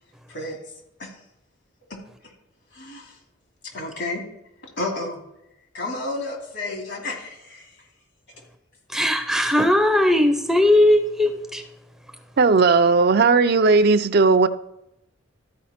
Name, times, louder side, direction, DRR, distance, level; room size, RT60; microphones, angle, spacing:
voice 1, 2.7-3.1 3.7-4.2 4.8-5.2 5.7-7.6 12.4-12.5, left 2 dB, 70° left, 1 dB, 2.7 m, -31 dB
voice 2, 8.9-11.6, left 1 dB, ahead, 6 dB, 0.6 m, -18 dB
voice 3, 12.4-14.5, right 4 dB, 55° right, 10 dB, 0.5 m, -16 dB
13.5 x 5.0 x 4.3 m, 0.84 s
head